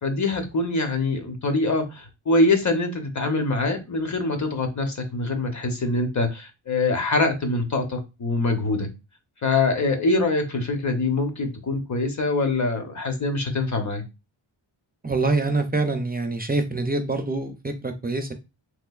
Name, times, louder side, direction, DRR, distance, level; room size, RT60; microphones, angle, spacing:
voice 1, 0.0-8.9 9.4-14.0, left 2 dB, 35° left, 0.8 m, -24 dB
voice 2, 15.0-18.3, right 3 dB, 20° right, 0.3 m, -25 dB
3.4 x 3.1 x 2.3 m
wide cardioid pair, 120°, 48 cm